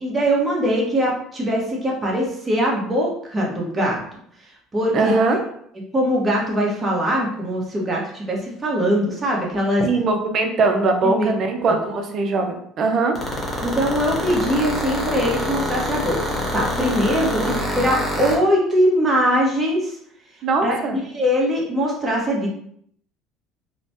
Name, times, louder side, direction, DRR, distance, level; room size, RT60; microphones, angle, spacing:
voice 1, 0.0-4.0 4.7-5.3 5.9-9.8 11.0-11.3 11.7-11.8 13.6-19.9 20.6-20.8 21.1-22.5, equal, 25° right, -2 dB, 1.0 m, -21 dB
voice 2, 4.9-5.4 9.8-13.1 17.4-17.5 20.4-21.0, right 3 dB, 50° right, 5 dB, 0.5 m, -21 dB
sound 1, 13.1-18.4, left 1 dB, 25° left, 1.0 m, -25 dB
3.1 x 2.1 x 2.7 m, 0.68 s
supercardioid pair, 95°, 0 cm